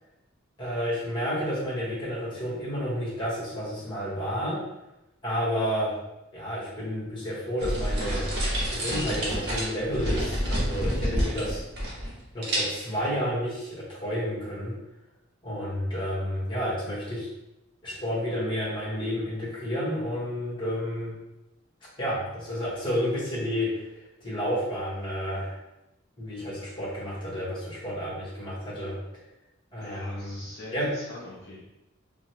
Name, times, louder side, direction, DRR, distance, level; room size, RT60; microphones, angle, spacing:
voice 1, 0.6-4.6 5.2-5.9 6.3-8.3 8.7-11.6 12.3-14.7 15.4-17.3 17.8-21.1 22.0-23.8 24.2-25.6 26.2-29.0 29.7-30.3 30.7-30.9, equal, 25° left, -7 dB, 1.2 m, -30 dB
sound 1, 7.6-12.2 12.4-13.0, equal, 55° right, 0.9 m, -28 dB
voice 2, 29.8-31.7, left 2 dB, 55° left, -6 dB, 0.5 m, -43 dB
2.9 x 2.1 x 2.8 m, 0.93 s
head